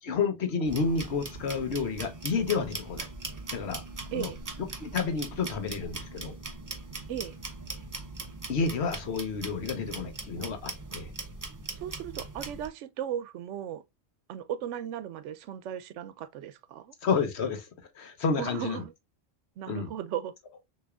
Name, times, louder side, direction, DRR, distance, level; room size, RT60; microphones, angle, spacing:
voice 1, 0.0-3.1 3.5-3.8 4.1-4.3 4.8-6.4 8.5-11.1 17.0-17.7 17.9-18.8 19.7-19.9, left 5 dB, 70° left, 1.2 m, -30 dB
sound 1, 0.6-12.7, right 3 dB, 30° right, 0.4 m, -40 dB
voice 2, 11.8-13.8 14.3-16.9 18.4-18.9 19.6-20.3, right 10 dB, 90° right, 0.9 m, -36 dB
6.2 x 3.0 x 2.3 m
omnidirectional pair, 1.2 m